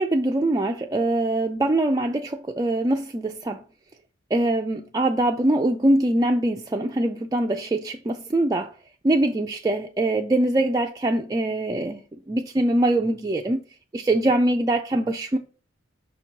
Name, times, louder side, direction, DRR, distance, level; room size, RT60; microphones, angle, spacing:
voice 1, 0.0-3.6 4.3-8.7 9.0-12.0 12.3-13.6 13.9-15.4, right 1 dB, 20° right, 0.3 m, -23 dB
5.8 x 3.0 x 5.6 m
head